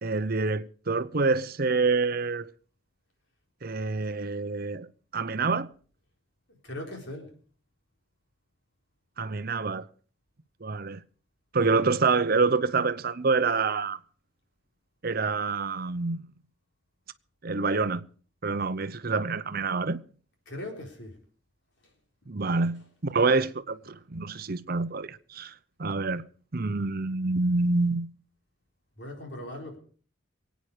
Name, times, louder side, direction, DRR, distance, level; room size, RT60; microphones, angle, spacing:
voice 1, 0.0-2.5 3.6-4.9 5.1-5.7 9.2-9.8 10.6-11.0 11.5-14.0 15.0-16.2 17.4-18.0 18.4-20.0 22.3-25.5 25.8-26.2 26.5-28.1, right 4 dB, 50° right, 0.8 m, -27 dB
voice 2, 6.6-7.3 20.5-21.1 22.4-22.6 29.0-29.8, left 1 dB, 65° left, 4.2 m, -39 dB
23.5 x 9.3 x 5.0 m
head